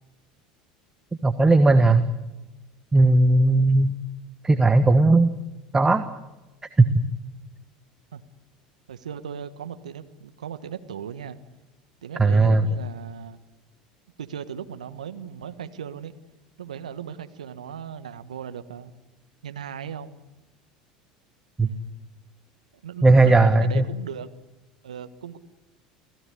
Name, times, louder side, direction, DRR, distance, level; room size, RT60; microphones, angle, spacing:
voice 1, 1.2-2.0 2.9-3.9 4.4-5.3 5.7-6.1 6.8-6.9 12.2-12.6 21.6-21.7 23.0-23.9, right 2 dB, 15° right, 10 dB, 1.4 m, -17 dB
voice 2, 8.9-11.4 12.0-13.4 14.2-16.1 16.6-18.9 19.4-20.2 21.6-21.9 22.8-24.3 24.8-25.4, right 8 dB, 80° right, 10 dB, 1.4 m, -37 dB
28.5 x 16.5 x 8.5 m, 1.1 s
figure-of-eight pair, 75°, 4 cm